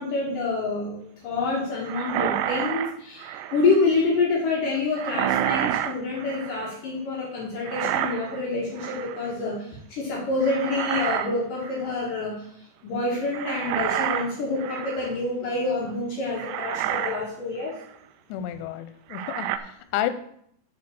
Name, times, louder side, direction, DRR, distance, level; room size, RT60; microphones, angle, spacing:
voice 1, 0.0-12.5 12.8-17.7, left 3 dB, 60° left, -4 dB, 2.9 m, -27 dB
sound 1, 1.8-3.8 5.0-6.7 7.6-8.4 8.8-9.3 10.4-11.3 11.6-11.9 13.3-15.2 15.9-16.0 16.4-17.3 17.7-17.8 19.1-19.6, right 11 dB, 85° right, 2.7 m, -29 dB
voice 2, 18.3-20.1, left 12 dB, 90° left, 11 dB, 2.9 m, -30 dB
9.7 x 4.6 x 6.9 m, 0.68 s
omnidirectional pair, 4.9 m